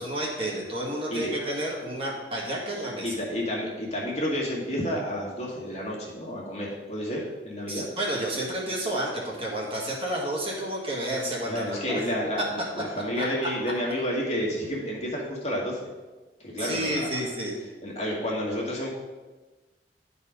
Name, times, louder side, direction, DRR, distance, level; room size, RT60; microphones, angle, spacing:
voice 1, 0.0-3.1 7.7-12.0 13.2-13.3 16.6-17.6, right 1 dB, 30° right, -3 dB, 1.8 m, -30 dB
voice 2, 3.0-7.9 11.4-15.8 16.4-17.1 17.8-18.9, equal, 35° left, -4 dB, 1.9 m, -30 dB
11.0 x 4.2 x 5.1 m, 1.2 s
head